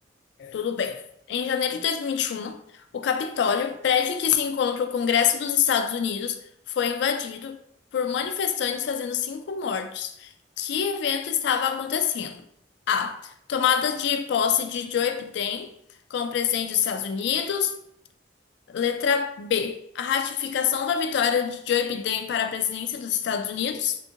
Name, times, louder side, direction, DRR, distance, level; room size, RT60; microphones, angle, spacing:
voice 1, 0.4-2.6 2.9-6.4 6.7-7.6 7.9-10.3 10.6-12.4 12.9-15.7 16.1-17.7 18.7-24.0, left 8 dB, 65° left, 0.3 m, -26 dB
3.4 x 2.6 x 2.7 m
head